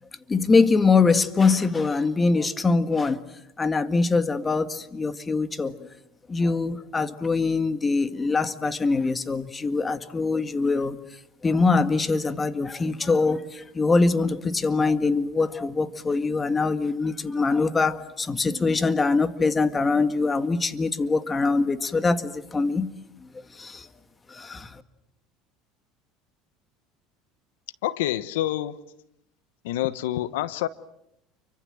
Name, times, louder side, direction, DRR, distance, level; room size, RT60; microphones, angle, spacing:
voice 1, 0.3-3.2 3.6-5.8 6.3-11.0 11.4-22.9 23.6-23.9 24.3-24.8, left 4 dB, 20° left, 11 dB, 1.9 m, -23 dB
voice 2, 27.8-28.8 29.6-30.7, left 14 dB, 90° left, 16 dB, 1.0 m, -27 dB
30.0 x 24.5 x 7.7 m, 0.81 s
supercardioid pair, 105°, 0 cm